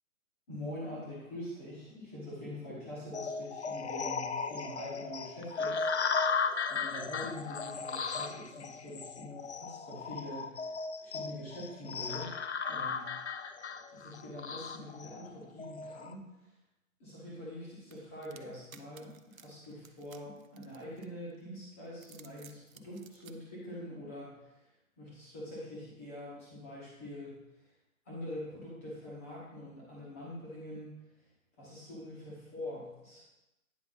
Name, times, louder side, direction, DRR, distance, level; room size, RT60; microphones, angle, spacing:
voice 1, 0.5-5.9 6.2-6.3 6.7-10.7 11.0-12.3 12.7-16.3 17.0-24.6 25.0-27.4 28.0-30.9 31.6-33.2, left 1 dB, 10° left, -6 dB, 1.2 m, -44 dB
sound 1, 3.1-16.1, left 5 dB, 55° left, 0.5 m, -36 dB
sound 2, 17.9-21.4 21.9-23.3, right 7 dB, 70° right, 0.7 m, -56 dB
9.6 x 5.2 x 3.9 m, 0.96 s
hypercardioid pair, 165°, 43 cm